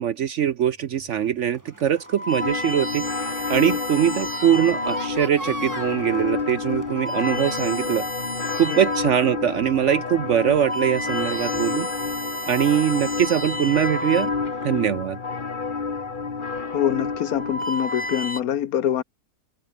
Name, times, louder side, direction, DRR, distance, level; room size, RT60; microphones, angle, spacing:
voice 1, 0.0-8.1 8.6-11.9 12.4-14.3 14.6-15.2, right 9 dB, 60° right, 0.8 m, -22 dB
sound 1, 1.0-1.3 1.9-5.3 6.0-6.2 6.8-9.2 9.7-9.8 10.3-14.8 15.8-16.2 17.1-18.4, equal, 5° left, 2.4 m, -32 dB
sound 2, 1.5-14.9, right 1 dB, 10° right, 1.9 m, -43 dB
sound 3, 2.4-18.3, left 4 dB, 35° left, 1.4 m, -30 dB
voice 2, 16.7-19.0, left 10 dB, 65° left, 1.3 m, -24 dB
omnidirectional pair, 1.7 m